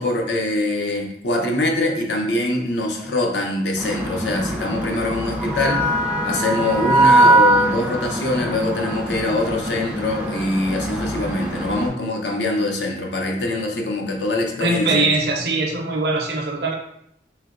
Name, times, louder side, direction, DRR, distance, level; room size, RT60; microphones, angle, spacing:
voice 1, 0.0-6.0 6.2-15.1, left 2 dB, 80° left, 1 dB, 0.6 m, -23 dB
sound 1, 3.8-11.9, right 1 dB, 5° right, 0.4 m, -21 dB
voice 2, 14.6-16.7, right 2 dB, 65° right, 0 dB, 0.5 m, -21 dB
3.2 x 2.8 x 2.4 m, 0.74 s
head